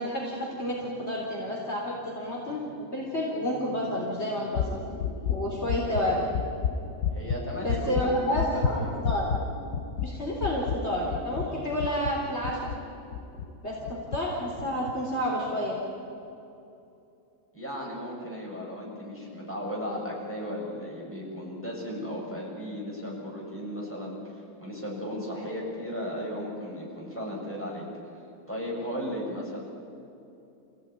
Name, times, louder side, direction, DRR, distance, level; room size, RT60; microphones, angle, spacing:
voice 1, 0.0-4.8 5.3-6.3 7.6-9.4 10.0-12.7 13.6-15.8, equal, 40° left, -3 dB, 4.1 m, -30 dB
sound 1, 4.5-13.5 13.9-14.2 14.6-14.9, left 6 dB, 90° left, 1.6 m, -31 dB
voice 2, 7.1-9.0 17.5-27.9 28.5-29.6, equal, 5° left, -4 dB, 7.4 m, -36 dB
28.5 x 17.0 x 9.8 m, 2.8 s
omnidirectional pair, 1.8 m